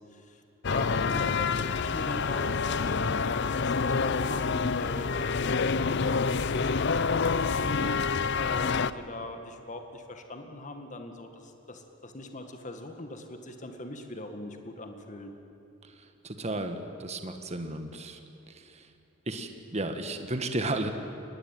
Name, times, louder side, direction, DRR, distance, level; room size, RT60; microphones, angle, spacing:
voice 1, 0.1-7.7 8.3-15.3, left 2 dB, 35° left, 5 dB, 1.9 m, -41 dB
sound 1, 0.6-8.9, left 5 dB, 60° left, 0.6 m, -27 dB
voice 2, 16.2-18.2 19.3-20.9, right 2 dB, 30° right, 6 dB, 1.6 m, -33 dB
23.5 x 20.0 x 9.2 m, 2.8 s
head